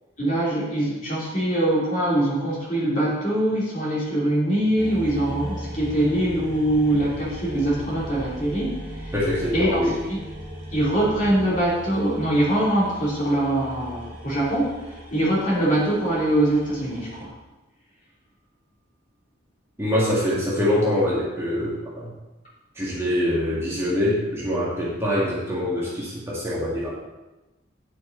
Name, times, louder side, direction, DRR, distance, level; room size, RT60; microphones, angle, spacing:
voice 1, 0.2-9.1 9.5-9.8 10.1-10.2 10.7-17.3, right 1 dB, 40° left, -6 dB, 3.0 m, -23 dB
sound 1, 4.8-17.3, right 1 dB, 45° right, 2.3 m, -38 dB
voice 2, 9.1-9.9 19.8-22.1 22.8-26.9, left 1 dB, 15° right, -7 dB, 2.2 m, -24 dB
9.1 x 8.8 x 4.0 m, 1.0 s
head